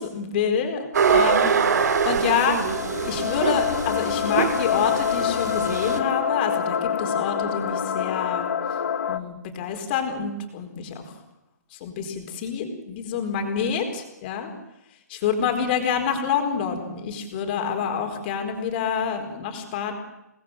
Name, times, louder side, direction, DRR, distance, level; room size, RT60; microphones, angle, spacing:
voice 1, 0.0-2.6 3.1-8.5 9.1-11.1 11.7-14.5 15.1-19.9, left 7 dB, 35° left, 5 dB, 4.5 m, -27 dB
sound 1, 0.9-6.0, right 6 dB, 70° right, 2.7 m, -24 dB
sound 2, 1.8-9.2, left 7 dB, 60° left, 1.9 m, -27 dB
26.0 x 19.5 x 7.7 m, 0.93 s
hypercardioid pair, 160°, 10 cm